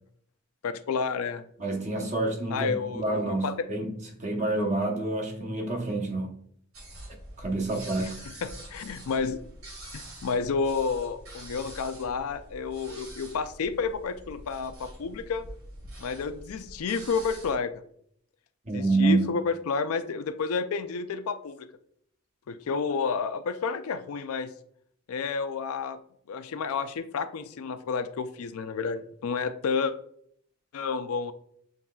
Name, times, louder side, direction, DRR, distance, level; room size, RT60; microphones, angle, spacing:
voice 1, 0.6-1.5 2.5-3.7 8.0-9.4 9.9-15.4 16.0-17.7 18.7-21.7 22.5-24.5 25.1-26.0 26.3-29.9 30.7-31.3, left 5 dB, 80° left, 0.4 m, -30 dB
voice 2, 1.6-3.9 4.2-6.4 7.4-8.2 18.7-19.3, right 2 dB, 35° right, 0.8 m, -28 dB
sound 1, 6.7-17.5, right 1 dB, 75° right, 1.8 m, -45 dB
7.1 x 3.1 x 2.3 m
head